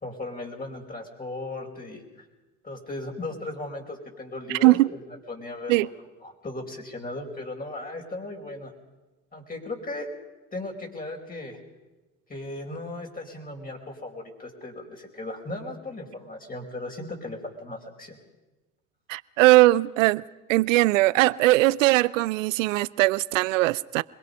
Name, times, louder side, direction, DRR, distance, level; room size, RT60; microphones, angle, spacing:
voice 1, 0.0-2.2 2.6-4.8 5.3-5.9 6.2-8.7 9.3-10.1 10.5-11.6 12.3-18.2, left 2 dB, 20° left, 5.0 m, -37 dB
voice 2, 4.5-4.9 5.7-5.9 19.1-20.2 20.5-24.0, right 19 dB, 75° right, 0.7 m, -20 dB
26.0 x 21.5 x 5.5 m
hypercardioid pair, 75°, 38 cm